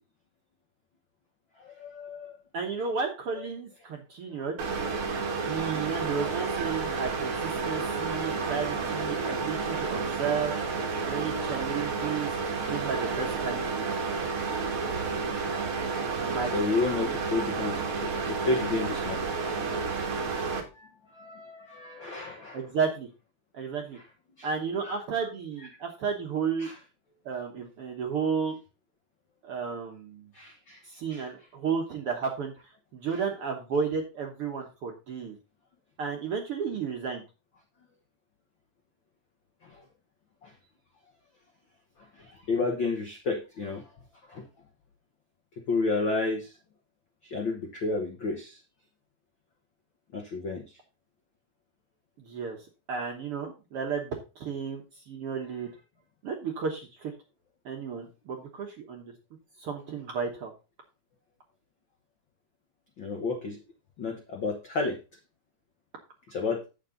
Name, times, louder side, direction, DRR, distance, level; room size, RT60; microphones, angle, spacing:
voice 1, 1.6-2.4 3.4-3.5 4.3-4.4 14.4-14.6 15.1-15.7 16.5-19.4 20.7-22.6 23.9-24.0 24.4-24.5 24.8-25.0 26.6-26.8 30.3-30.8 31.1-31.3 33.1-33.2 39.6-39.8 40.4-40.5 42.0-43.9 44.3-44.5 45.6-46.6 47.2-48.6 50.1-50.8 63.0-63.6 64.0-65.0 66.3-66.6, left 3 dB, 85° left, 2 dB, 1.0 m, -32 dB
voice 2, 2.5-4.6 5.5-10.5 11.0-12.3 12.7-14.1 16.2-16.7 22.5-23.1 23.5-24.0 24.4-26.7 27.2-28.6 29.4-30.3 30.8-32.5 32.9-35.4 36.0-37.2 52.2-52.6 52.9-55.7 56.2-57.1 57.6-59.1 59.6-60.5, right 6 dB, 65° right, 2 dB, 1.5 m, -33 dB
sound 1, 4.6-20.6, right 4 dB, 45° right, 2.0 m, -31 dB
9.0 x 7.4 x 3.8 m, 0.30 s
omnidirectional pair, 4.0 m